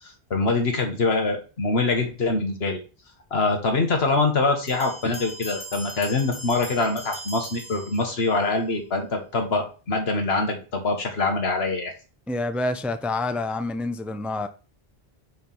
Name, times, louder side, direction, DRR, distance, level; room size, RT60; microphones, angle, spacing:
voice 1, 0.0-2.8 3.3-11.9, left 3 dB, 85° left, 1.6 m, -24 dB
Bell, 4.7-8.5, equal, 50° left, 1.5 m, -40 dB
voice 2, 12.3-14.5, left 2 dB, ahead, 0.3 m, -27 dB
4.8 x 4.7 x 5.5 m
omnidirectional pair, 1.0 m